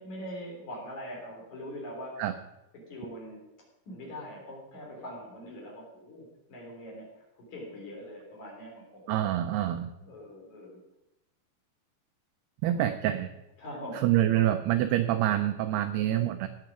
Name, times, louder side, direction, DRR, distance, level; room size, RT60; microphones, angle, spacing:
voice 1, 0.0-2.2 2.7-3.4 3.9-7.2 7.5-9.0 10.0-10.8 12.6-12.8 13.6-14.1, equal, 45° left, -2 dB, 4.1 m, -42 dB
voice 2, 9.1-9.9 12.6-13.3 13.9-16.5, right 12 dB, 85° right, 8 dB, 2.3 m, -26 dB
18.0 x 7.7 x 4.9 m, 0.94 s
omnidirectional pair, 5.3 m